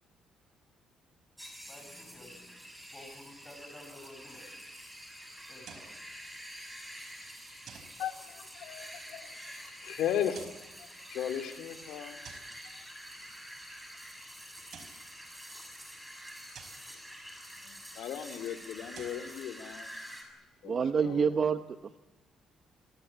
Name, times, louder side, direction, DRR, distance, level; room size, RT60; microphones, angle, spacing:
sound 1, 1.4-20.2, equal, 5° right, 6.6 m, -47 dB
voice 1, 1.7-2.5 2.9-4.5 5.5-6.0, left 1 dB, 15° left, 5 dB, 7.0 m, -52 dB
sound 2, 5.6-6.0 7.7-8.0 10.2-10.7 12.2-12.6 14.5-15.1 16.5-16.9 18.8-19.3, right 7 dB, 60° right, 4.8 m, -51 dB
voice 2, 8.0-12.2 17.6-19.9 20.6-21.3, left 9 dB, 75° left, 8 dB, 2.5 m, -37 dB
voice 3, 20.6-22.0, right 6 dB, 35° right, 10 dB, 0.9 m, -28 dB
27.5 x 22.5 x 8.6 m, 1.1 s
cardioid pair, 150°, 0 cm